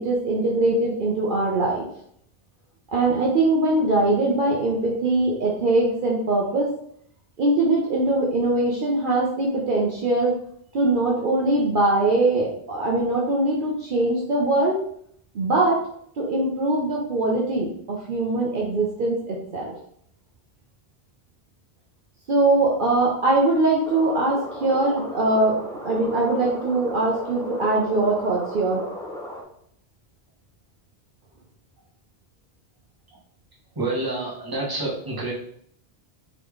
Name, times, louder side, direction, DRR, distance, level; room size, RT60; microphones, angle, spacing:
voice 1, 0.0-1.9 2.9-6.7 7.4-10.4 10.7-14.8 15.3-15.8 16.2-19.7 22.3-28.8, right 2 dB, 55° right, -3 dB, 0.9 m, -22 dB
sound 1, 23.8-29.4, left 1 dB, 5° left, 0.4 m, -35 dB
voice 2, 33.7-35.3, right 2 dB, 20° right, -4 dB, 1.1 m, -28 dB
4.1 x 3.5 x 3.1 m, 0.66 s
omnidirectional pair, 1.1 m